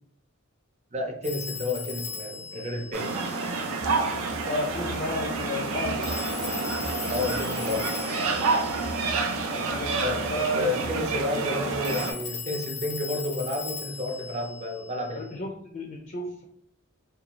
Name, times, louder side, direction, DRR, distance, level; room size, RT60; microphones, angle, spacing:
voice 1, 0.9-3.1 7.1-7.9 10.0-15.4, left 1 dB, 35° right, 3 dB, 0.5 m, -31 dB
Telephone, 1.2-3.9 6.0-9.7 11.8-15.3, left 7 dB, 85° left, 0.6 m, -38 dB
sound 1, 2.9-12.1, right 4 dB, 90° right, 0.4 m, -29 dB
sound 2, 3.8-11.9, right 1 dB, 55° right, 0.8 m, -42 dB
voice 2, 4.4-6.2 9.5-10.8 15.1-16.4, left 1 dB, 40° left, 1 dB, 0.3 m, -32 dB
2.5 x 2.2 x 2.9 m, 0.68 s
head